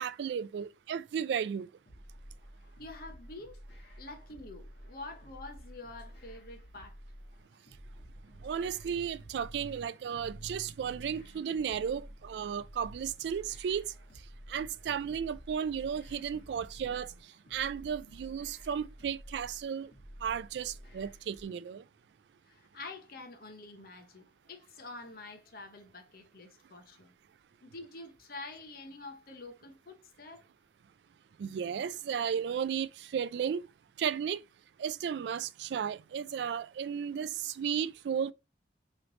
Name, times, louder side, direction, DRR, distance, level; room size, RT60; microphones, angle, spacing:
voice 1, 0.0-1.7 8.4-13.9 14.5-17.1 17.5-19.9 20.2-21.8 31.4-33.7 34.0-34.4 34.8-38.3, right 7 dB, 75° right, 0.3 m, -34 dB
sound 1, 1.9-21.5, equal, 80° left, 1.3 m, -51 dB
voice 2, 2.8-3.6 4.0-7.0 22.5-27.1 27.6-30.4, left 2 dB, 55° left, 0.8 m, -47 dB
3.1 x 3.1 x 3.9 m
head